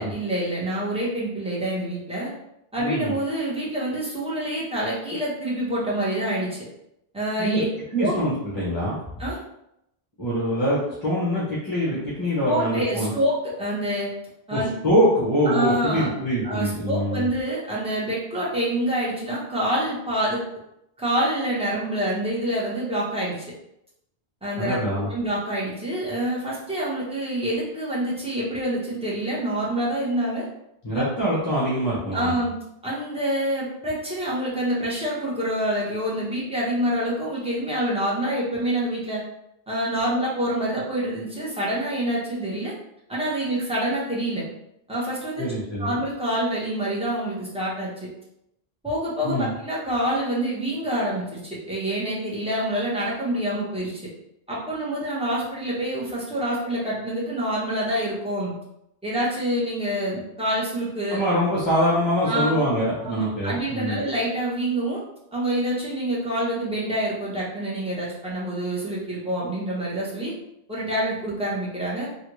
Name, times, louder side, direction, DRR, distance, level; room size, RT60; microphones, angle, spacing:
voice 1, 0.0-2.3 2.7-6.7 7.1-7.6 7.9-8.1 9.2-9.4 12.4-14.1 14.5-14.7 15.4-16.1 16.4-20.4 21.0-23.5 24.4-30.4 30.9-31.0 32.1-32.5 32.8-39.2 39.7-42.7 43.1-44.5 44.9-45.5 45.8-48.1 48.8-54.0 54.5-58.6 59.0-61.2 62.3-62.5 63.0-65.0 65.3-70.3 70.7-72.1, right 1 dB, 5° right, -7 dB, 0.9 m, -26 dB
voice 2, 2.8-3.1 7.4-7.6 7.9-9.0 10.2-13.1 14.5-17.2 24.6-25.1 30.8-32.3 45.4-46.0 49.2-49.5 61.1-64.0, equal, 30° left, -7 dB, 0.8 m, -24 dB
3.3 x 2.5 x 3.0 m, 0.81 s
omnidirectional pair, 1.0 m